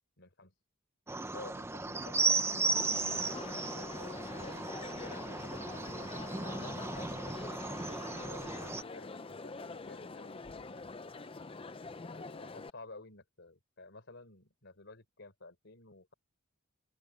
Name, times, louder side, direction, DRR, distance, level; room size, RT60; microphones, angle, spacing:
voice 1, 0.2-0.5 1.3-2.8 3.1-5.8 6.5-7.8 8.2-10.7 12.0-16.1, left 2 dB, 55° left, 4.0 m, -52 dB
sound 1, 1.1-8.8, right 3 dB, 10° right, 0.7 m, -35 dB
Crowd, 2.8-12.7, left 3 dB, 25° left, 0.6 m, -45 dB
open air
head